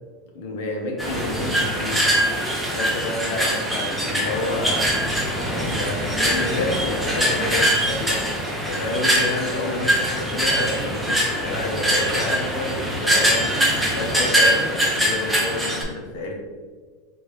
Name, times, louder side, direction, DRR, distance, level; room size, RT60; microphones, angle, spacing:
voice 1, 0.3-2.1 2.7-4.9 5.5-8.2 8.7-16.3, left 2 dB, 60° left, 1 dB, 0.9 m, -29 dB
sound 1, 1.0-15.8, equal, ahead, 0.6 m, -23 dB
4.5 x 3.5 x 3.2 m, 1.5 s
supercardioid pair, 180°, 0 cm